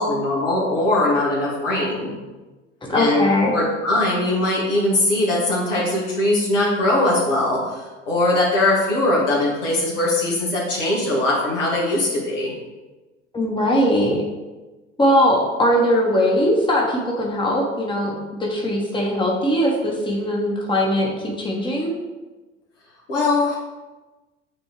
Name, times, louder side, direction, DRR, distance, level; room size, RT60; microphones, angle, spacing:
voice 1, 0.0-2.1 2.9-12.5 23.1-23.6, left 2 dB, 75° left, -5 dB, 2.1 m, -21 dB
voice 2, 2.9-3.5 13.3-14.2 15.0-21.9, equal, 15° left, -1 dB, 1.4 m, -20 dB
9.7 x 3.4 x 3.2 m, 1.2 s
figure-of-eight pair, 70°, 37 cm